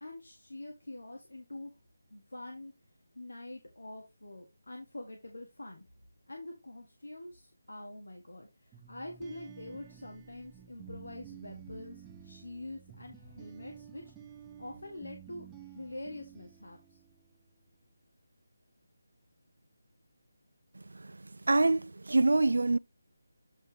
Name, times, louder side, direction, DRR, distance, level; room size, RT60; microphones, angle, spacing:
voice 1, 0.0-1.7 2.1-2.7 3.1-5.9 6.3-14.0 14.6-15.5 15.7-17.0, left 1 dB, 85° left, 1.6 m, -45 dB
sound 1, 8.7-17.4, right 9 dB, 10° right, 0.7 m, -52 dB
voice 2, 21.5-22.8, right 2 dB, 75° right, 0.3 m, -25 dB
8.5 x 3.1 x 5.0 m
figure-of-eight pair, 165°, 0 cm